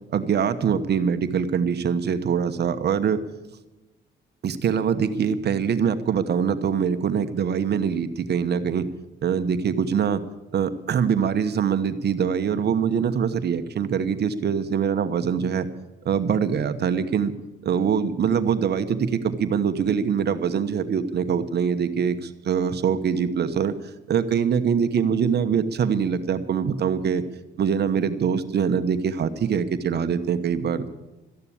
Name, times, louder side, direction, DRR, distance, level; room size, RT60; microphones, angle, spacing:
voice 1, 0.1-3.2 4.4-8.9 9.2-10.2 10.5-15.7 16.0-17.3 17.6-23.7 24.1-27.2 27.6-30.9, right 7 dB, 55° right, 10 dB, 1.1 m, -23 dB
13.5 x 10.5 x 8.6 m, 1.1 s
cardioid pair, 90°, 20 cm